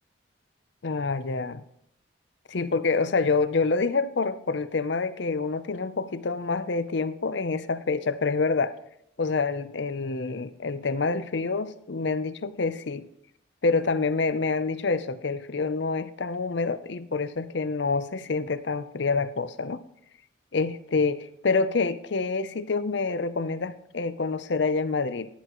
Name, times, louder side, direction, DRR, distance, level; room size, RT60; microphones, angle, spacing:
voice 1, 0.8-1.6 2.5-8.7 9.2-13.1 13.6-19.8 20.5-25.3, left 4 dB, 65° left, 13 dB, 0.6 m, -27 dB
15.5 x 10.5 x 3.0 m, 0.74 s
head